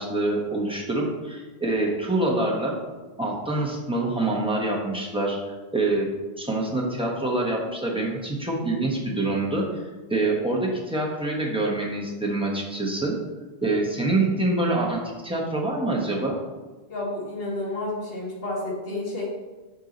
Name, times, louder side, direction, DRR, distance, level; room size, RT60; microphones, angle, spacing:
voice 1, 0.0-2.7 3.2-5.4 5.7-6.1 6.4-9.6 10.1-13.2 13.6-16.4, right 2 dB, 5° right, -3 dB, 0.9 m, -25 dB
voice 2, 16.9-19.3, left 2 dB, 60° left, -3 dB, 1.6 m, -30 dB
5.4 x 4.5 x 3.9 m, 1.2 s
omnidirectional pair, 1.1 m